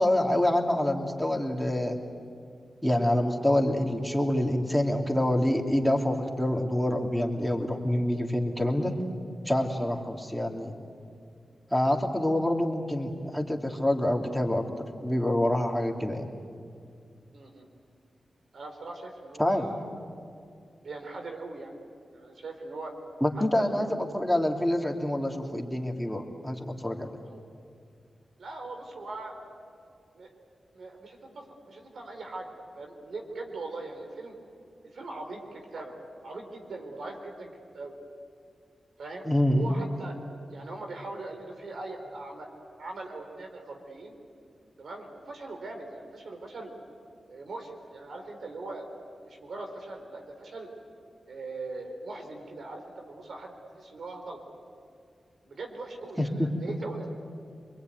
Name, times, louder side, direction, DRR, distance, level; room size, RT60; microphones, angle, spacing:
voice 1, 0.0-2.0 2.8-9.0 9.4-10.8 11.7-14.7 15.0-16.3 19.4-19.7 23.2-27.1 39.2-39.7 56.2-56.5, left 1 dB, ahead, 1 dB, 2.9 m, -26 dB
voice 2, 17.3-17.7 18.5-19.9 20.8-21.8 22.1-22.9 23.4-23.8 27.2-27.4 28.4-29.5 30.1-30.3 30.7-32.5 32.8-34.4 34.8-36.0 36.2-37.9 39.0-40.2 40.5-42.5 42.8-44.2 44.8-46.7 47.3-48.9 49.2-50.7 51.3-54.4 55.4-57.1, right 2 dB, 75° right, 3 dB, 4.1 m, -40 dB
26.0 x 22.0 x 9.4 m, 2.4 s
cardioid pair, 50°, 0 cm